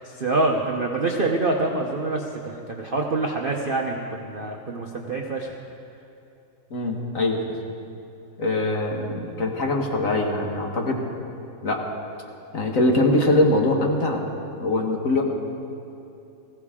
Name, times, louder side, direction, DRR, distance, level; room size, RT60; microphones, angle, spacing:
voice 1, 0.0-5.5, right 2 dB, 45° right, 1 dB, 0.7 m, -26 dB
voice 2, 6.7-7.4 8.4-11.1 11.6-11.8 12.5-14.2 14.6-15.2, left 2 dB, 50° left, 1 dB, 1.6 m, -22 dB
19.0 x 15.5 x 3.7 m, 2.7 s
omnidirectional pair, 2.0 m